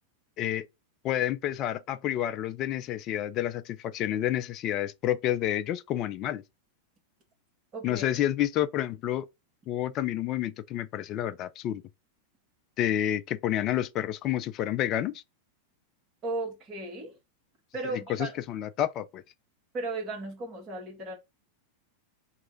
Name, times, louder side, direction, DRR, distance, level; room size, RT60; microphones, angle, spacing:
voice 1, 1.0-6.4 7.8-9.2 9.7-11.8 12.8-15.2 18.2-19.2, left 12 dB, 35° left, 0.3 m, -29 dB
voice 2, 7.7-8.1 16.2-17.2 17.7-18.3 19.7-21.2, right 2 dB, 30° right, 1.6 m, -35 dB
3.2 x 2.4 x 4.3 m
figure-of-eight pair, 90°, 0 cm